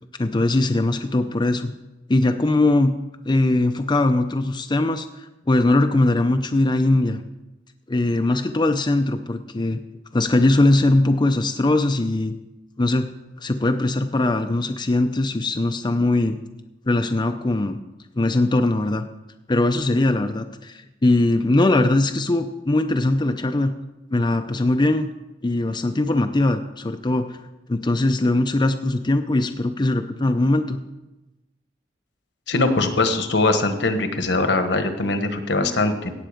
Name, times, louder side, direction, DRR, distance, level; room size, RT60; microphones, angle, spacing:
voice 1, 0.2-1.7 2.1-2.9 3.3-7.2 7.9-9.8 10.1-12.3 12.8-13.1 13.4-16.4 16.9-17.8 18.2-19.1 19.5-23.7 24.1-25.1 25.4-27.4 27.7-30.8, left 2 dB, 25° left, 6 dB, 0.5 m, -20 dB
voice 2, 32.5-36.1, left 2 dB, 70° left, 8 dB, 1.3 m, -21 dB
17.0 x 7.9 x 5.1 m, 1.0 s
head